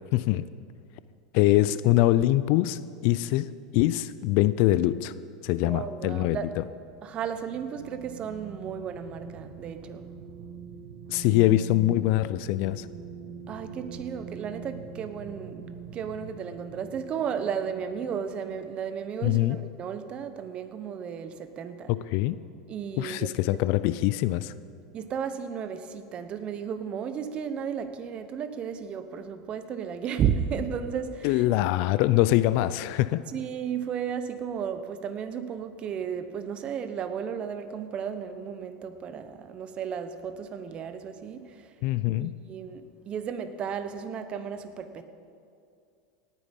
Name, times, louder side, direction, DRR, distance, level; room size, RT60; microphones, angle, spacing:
voice 1, 0.1-0.5 1.3-5.1 5.4-6.6 11.1-12.9 19.2-19.6 21.9-22.4 23.0-24.5 31.2-33.2 41.8-42.3, left 15 dB, 55° left, 16 dB, 0.4 m, -24 dB
voice 2, 5.6-6.5 7.0-10.1 13.5-21.9 22.7-23.3 24.9-31.4 33.3-41.7 42.1-45.0, right 7 dB, 35° right, 10 dB, 1.0 m, -34 dB
sound 1, 6.3-19.8, right 6 dB, 60° right, 1.8 m, -44 dB
18.0 x 9.2 x 5.3 m, 2.4 s
supercardioid pair, 125°, 3 cm